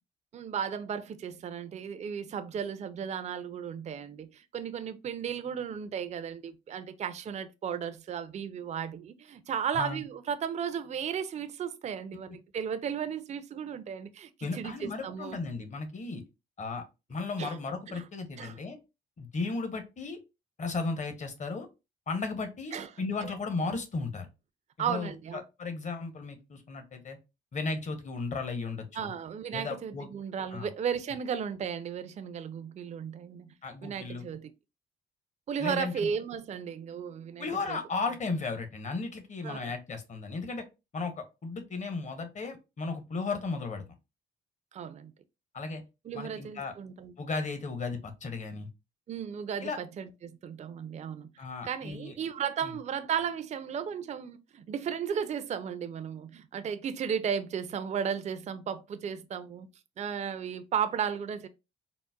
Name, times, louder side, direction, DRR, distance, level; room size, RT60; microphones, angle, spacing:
voice 1, 0.3-15.4 17.4-17.6 17.9-18.0 18.4-18.6 22.7-22.9 23.2-23.3 24.8-25.4 28.9-33.5 33.8-34.5 35.5-37.8 39.4-39.7 44.7-45.1 46.0-47.1 49.1-51.3 51.6-59.7 60.0-61.5, right 7 dB, 35° right, 0.4 m, -35 dB
voice 2, 14.4-16.2 16.6-16.8 17.1-18.8 19.2-20.2 20.6-21.7 22.1-24.3 24.8-27.2 27.5-29.1 29.5-30.1 30.5-30.7 33.6-34.2 35.6-36.1 37.4-40.6 40.9-43.8 45.5-45.8 46.1-46.7 47.2-48.7 49.6-49.8 51.4-52.1 52.6-52.7, left 4 dB, 35° left, 0.8 m, -35 dB
3.8 x 2.0 x 2.2 m
cardioid pair, 90°, 20 cm